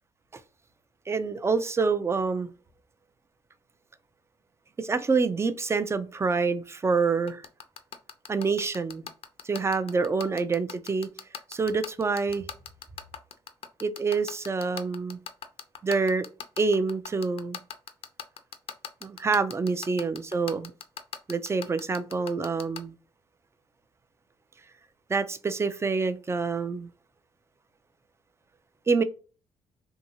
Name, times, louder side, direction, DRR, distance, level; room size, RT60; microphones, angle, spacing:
voice 1, 1.1-2.5 4.8-7.4 8.3-9.1 9.4-11.1 11.5-12.4 13.8-15.2 15.8-16.3 16.6-17.6 19.0-20.7 21.3-22.9 25.1-26.9 28.9-29.0, right 4 dB, 20° right, 0.4 m, -27 dB
sound 1, 7.3-22.8, left 8 dB, 55° left, 0.5 m, -38 dB
2.7 x 2.7 x 2.7 m
supercardioid pair, 65°, 12 cm